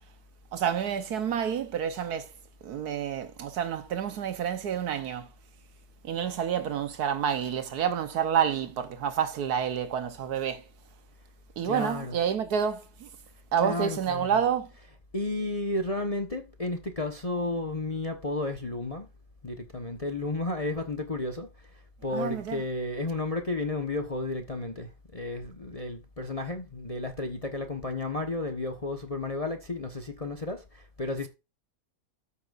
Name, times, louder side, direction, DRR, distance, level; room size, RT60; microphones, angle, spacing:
voice 1, 0.5-2.3 2.6-5.3 6.0-10.6 11.6-13.1 13.5-14.7 22.1-22.6, right 8 dB, 80° right, 1.4 m, -29 dB
voice 2, 11.6-12.2 13.6-14.5 15.1-19.1 19.4-21.5 22.0-30.6 31.0-31.3, left 2 dB, 25° left, 1.1 m, -32 dB
13.5 x 8.5 x 2.5 m
omnidirectional pair, 1.6 m